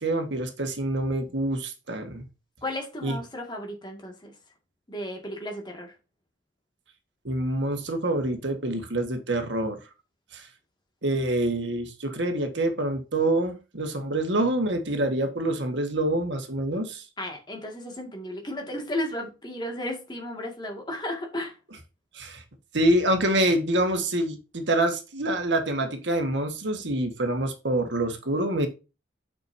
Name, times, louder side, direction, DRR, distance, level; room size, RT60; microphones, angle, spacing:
voice 1, 0.0-2.2 3.0-3.2 7.3-9.8 10.3-10.5 11.0-17.0 22.1-22.4 22.7-28.7, right 1 dB, 70° right, 1.6 m, -26 dB
voice 2, 2.6-4.3 4.9-5.9 17.2-21.5, left 1 dB, 25° left, 2.1 m, -34 dB
8.9 x 6.1 x 2.8 m
head